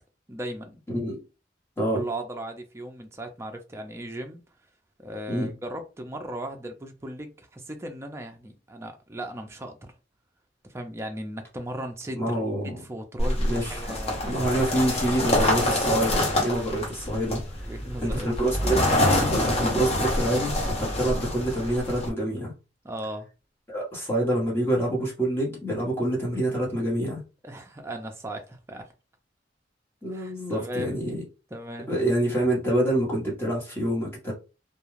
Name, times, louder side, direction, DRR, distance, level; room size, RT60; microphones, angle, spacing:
voice 1, 0.3-0.8 1.9-4.4 5.0-9.9 10.7-14.6 15.2-15.4 17.7-18.3 18.6-18.7 22.8-23.3 27.4-28.9 30.1-31.0 31.5-31.9, right 1 dB, 15° right, 0.4 m, -37 dB
voice 2, 12.2-12.8 13.4-13.9 14.2-17.7 18.0-22.5 23.7-27.2 30.0-31.2 31.9-34.3, right 1 dB, 15° left, 0.9 m, -27 dB
sound 1, 13.2-22.1, left 1 dB, 35° left, 0.8 m, -26 dB
2.3 x 2.2 x 3.1 m
head